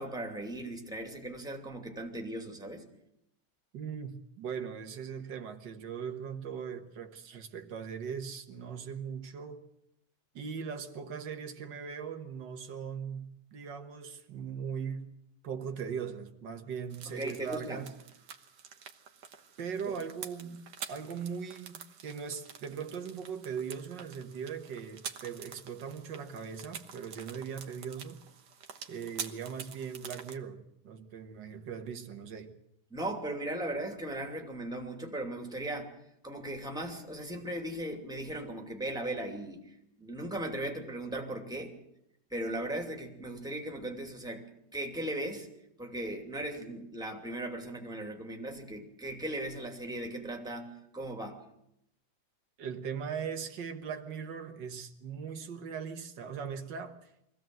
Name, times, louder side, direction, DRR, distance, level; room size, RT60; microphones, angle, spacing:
voice 1, 0.0-2.9 17.1-17.8 19.9-20.0 32.9-35.9 36.2-41.7 42.3-45.5 45.8-51.4, right 1 dB, ahead, 2.6 m, -38 dB
voice 2, 3.7-9.6 10.4-15.1 15.4-17.9 19.6-28.2 28.9-32.5 52.6-57.1, right 7 dB, 85° right, 2.0 m, -39 dB
sound 1, 16.9-30.4, right 7 dB, 70° right, 1.7 m, -47 dB
23.0 x 16.0 x 7.7 m
omnidirectional pair, 1.9 m